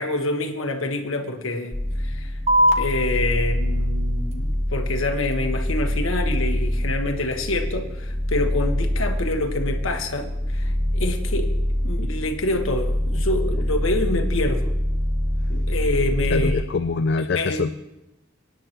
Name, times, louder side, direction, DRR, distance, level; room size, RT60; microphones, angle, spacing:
voice 1, 0.0-2.4 2.8-11.5 11.8-14.7 15.5-16.6 17.3-17.6, left 2 dB, 75° left, 5 dB, 1.3 m, -27 dB
sound 1, 1.7-16.5, equal, 15° right, 4.7 m, -25 dB
sound 2, 2.5-9.5, equal, 30° right, 1.0 m, -29 dB
voice 2, 16.3-17.8, left 4 dB, 55° left, 9 dB, 0.4 m, -24 dB
24.5 x 9.9 x 3.0 m, 0.92 s
head